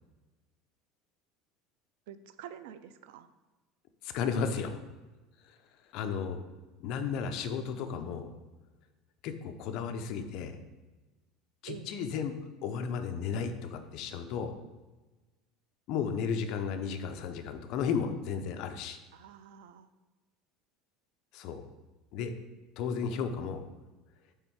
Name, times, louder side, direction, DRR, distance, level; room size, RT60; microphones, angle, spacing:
voice 1, 2.1-3.3 11.7-11.9 19.1-19.9, right 9 dB, 85° right, 12 dB, 0.4 m, -47 dB
voice 2, 4.0-4.8 5.5-5.6 5.9-6.4 6.8-8.3 9.2-10.6 11.6-12.3 12.6-14.5 15.9-19.0 21.3-21.6 22.1-22.3 22.8-23.6, left 6 dB, 45° left, 7 dB, 0.6 m, -34 dB
8.2 x 3.5 x 4.6 m, 1.2 s
cardioid pair, 175°, 0 cm